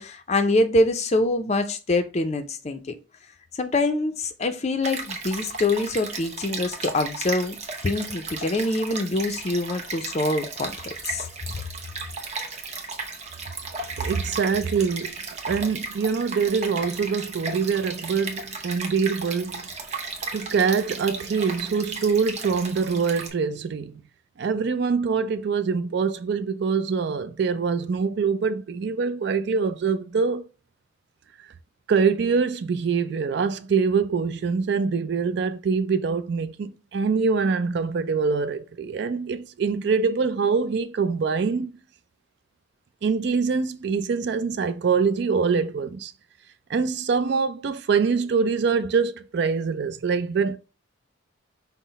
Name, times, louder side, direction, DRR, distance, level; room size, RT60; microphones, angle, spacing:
voice 1, 0.0-2.9 3.5-7.6 7.8-10.8 11.0-11.3, left 2 dB, 35° left, 0.5 m, -24 dB
Stream, 4.8-23.3, right 4 dB, 35° right, 0.7 m, -35 dB
voice 2, 14.0-15.1 15.5-19.7 20.3-24.0 24.4-30.4 31.9-41.7 43.0-46.1 46.7-50.6, right 5 dB, 55° right, 0.3 m, -24 dB
5.6 x 2.1 x 4.0 m
head